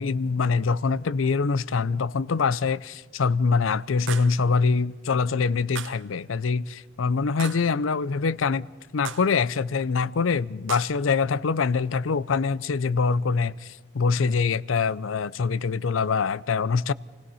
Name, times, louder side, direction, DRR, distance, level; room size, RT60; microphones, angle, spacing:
voice 1, 0.0-8.7 8.9-16.9, left 5 dB, 75° left, 0.5 m, -24 dB
sound 1, 4.1-4.5 5.8-6.1 7.4-7.8 9.1-9.4 10.7-11.1, right 8 dB, 65° right, 0.8 m, -37 dB
28.0 x 17.5 x 5.6 m
head